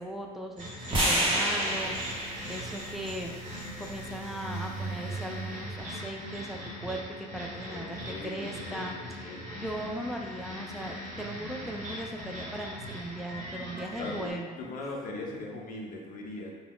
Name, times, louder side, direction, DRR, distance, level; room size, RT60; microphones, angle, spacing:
voice 1, 0.0-3.3 3.8-9.0 9.6-14.6, right 1 dB, ahead, 0 dB, 0.3 m, -38 dB
sound 1, 0.6-14.3, equal, 50° right, 1.0 m, -41 dB
sound 2, 0.9-5.1, right 1 dB, 30° right, 1.0 m, -31 dB
sound 3, 4.3-7.2, right 4 dB, 75° right, 0.7 m, -40 dB
voice 2, 7.7-9.5 14.0-14.3 14.6-16.5, left 2 dB, 55° left, -1 dB, 0.6 m, -40 dB
2.4 x 2.3 x 3.4 m, 1.4 s
cardioid pair, 110°, 17 cm